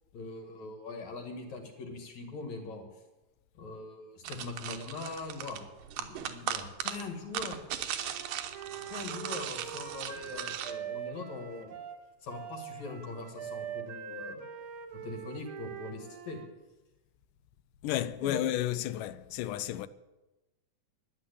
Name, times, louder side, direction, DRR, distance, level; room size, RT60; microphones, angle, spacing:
voice 1, 0.1-2.8 3.5-5.6 6.0-7.6 8.9-11.8 12.2-14.4 15.0-16.4 18.2-18.5, left 3 dB, 65° left, 3.2 m, -41 dB
sound 1, 4.2-10.7, right 10 dB, 85° right, 2.5 m, -38 dB
Wind instrument woodwind instrument, 8.0-16.5, right 8 dB, 65° right, 1.4 m, -43 dB
voice 2, 17.8-19.9, left 13 dB, 90° left, 2.2 m, -32 dB
12.0 x 10.5 x 8.4 m
omnidirectional pair, 3.7 m